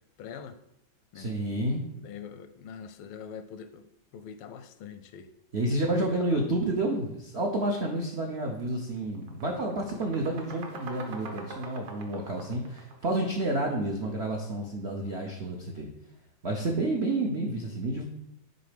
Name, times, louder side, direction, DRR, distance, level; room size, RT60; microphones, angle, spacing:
voice 1, 0.2-0.6 1.1-1.3 2.0-3.9 4.1-5.3 5.9-6.4 16.5-16.7, left 7 dB, 85° left, 11 dB, 1.4 m, -43 dB
voice 2, 1.1-1.8 5.5-15.9 16.4-18.0, right 1 dB, 80° right, 0 dB, 0.5 m, -30 dB
sound 1, 8.3-8.5 8.8-13.8, right 3 dB, 60° right, 1.6 m, -44 dB
6.5 x 4.1 x 5.1 m, 0.82 s
omnidirectional pair, 2.2 m